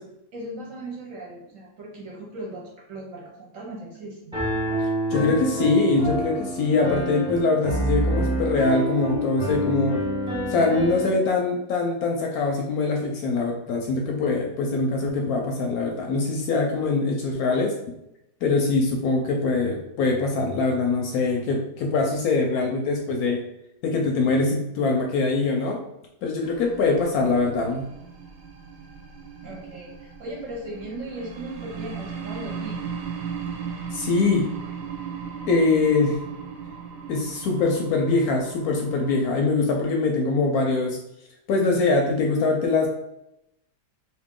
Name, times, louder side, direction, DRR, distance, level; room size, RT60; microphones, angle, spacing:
voice 1, 0.3-4.3 29.4-32.9, right 1 dB, 55° right, -2 dB, 1.0 m, -37 dB
Piano, 4.3-11.2, right 1 dB, 5° right, 0.3 m, -27 dB
voice 2, 5.1-10.0 10.5-17.7 18.4-23.4 23.8-25.8 26.2-27.9 33.9-34.5 35.5-36.2 37.1-41.0 41.5-42.9, left 3 dB, 70° left, 1 dB, 0.9 m, -23 dB
sound 1, 26.4-39.4, right 6 dB, 75° right, 1.1 m, -37 dB
2.9 x 2.7 x 3.6 m, 0.82 s
omnidirectional pair, 1.8 m